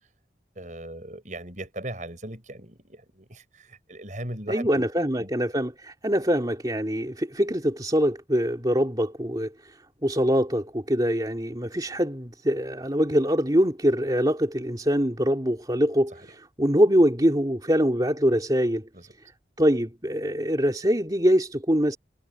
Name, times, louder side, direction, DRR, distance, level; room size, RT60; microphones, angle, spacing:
voice 1, 0.6-4.9 5.2-5.3 18.9-19.1, right 1 dB, 45° right, 7.0 m, -38 dB
voice 2, 4.5-18.9 19.6-22.0, equal, 20° right, 3.1 m, -24 dB
head